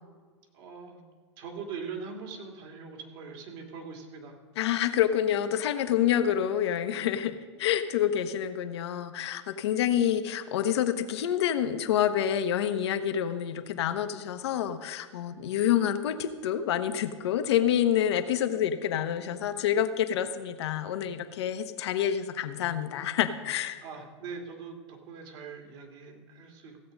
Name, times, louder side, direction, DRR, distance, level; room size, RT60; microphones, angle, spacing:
voice 1, 0.5-1.0 1.4-4.3 9.7-9.9 23.8-26.9, right 5 dB, 55° right, 2 dB, 2.6 m, -42 dB
voice 2, 4.6-23.8, left 10 dB, 65° left, 9 dB, 1.0 m, -27 dB
16.0 x 7.8 x 5.3 m, 1.5 s
hypercardioid pair, 105°, 15 cm